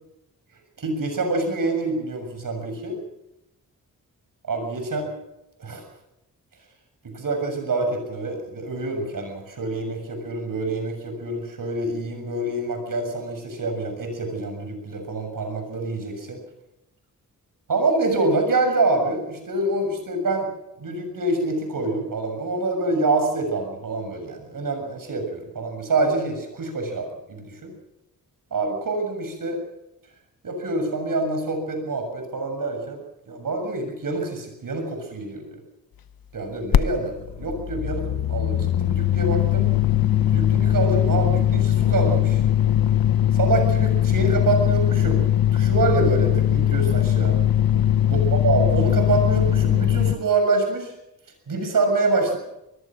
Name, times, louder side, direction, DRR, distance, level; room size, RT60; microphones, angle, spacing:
voice 1, 0.8-3.0 4.5-5.1 5.6-5.8 7.1-16.4 17.7-20.5 20.8-27.7 28.5-29.6 30.4-33.0 33.3-35.4 36.3-39.7 40.3-42.4 43.3-45.2 45.5-47.4 48.1-50.9 51.5-52.4, right 2 dB, 65° right, 5 dB, 6.9 m, -26 dB
sound 1, 36.7-36.8 37.1-50.2, left 11 dB, 80° left, 1.0 m, -20 dB
24.5 x 20.5 x 6.3 m, 0.88 s
cardioid pair, 80°, 35 cm